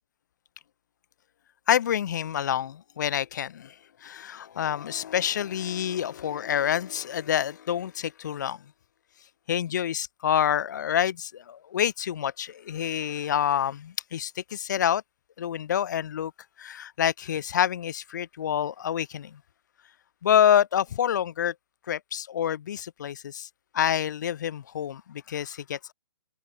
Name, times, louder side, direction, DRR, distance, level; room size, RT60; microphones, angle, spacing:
voice 1, 1.7-3.7 4.0-8.6 9.5-15.0 15.4-16.3 16.6-19.4 20.2-21.5 21.9-23.5 23.7-25.9, left 9 dB, 45° left, 1.0 m, -27 dB
hypercardioid pair, 170°, 13 cm